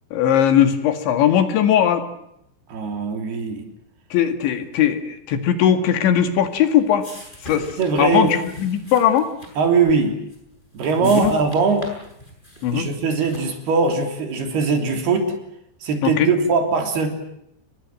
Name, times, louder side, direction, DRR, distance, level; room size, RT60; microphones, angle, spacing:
voice 1, 0.1-2.0 4.1-7.0 7.4-9.3 11.0-11.3 12.6-12.9 16.0-16.3, left 9 dB, 80° left, 9 dB, 4.4 m, -19 dB
voice 2, 2.7-3.7 7.5-8.3 9.6-10.2 10.7-11.9 12.7-15.3 15.8-17.1, right 4 dB, 60° right, 5 dB, 5.4 m, -21 dB
sound 1, 6.2-13.7, left 1 dB, 10° left, 7.6 m, -43 dB
29.5 x 23.0 x 7.7 m, 0.78 s
omnidirectional pair, 5.2 m